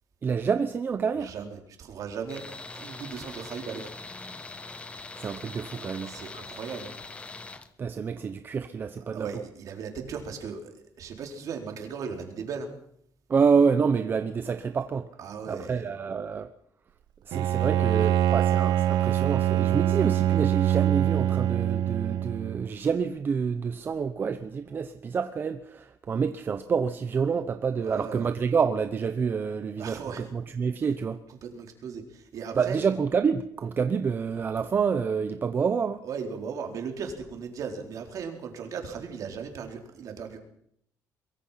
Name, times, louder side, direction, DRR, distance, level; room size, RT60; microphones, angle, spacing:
voice 1, 0.2-1.3 5.2-6.1 7.8-9.4 13.3-15.1 15.5-16.5 17.3-31.2 32.5-36.0, right 6 dB, 30° right, 0.9 m, -28 dB
voice 2, 1.2-3.9 6.1-6.9 9.1-12.7 15.2-15.9 27.8-28.3 29.8-30.3 30.8-31.0 31.3-32.8 36.0-40.4, right 6 dB, 50° right, 4.1 m, -37 dB
Tools, 2.3-7.7, left 3 dB, 15° left, 1.2 m, -42 dB
Bowed string instrument, 17.3-22.7, right 12 dB, 75° right, 0.9 m, -24 dB
23.5 x 23.0 x 5.8 m
cardioid pair, 175°, 7 cm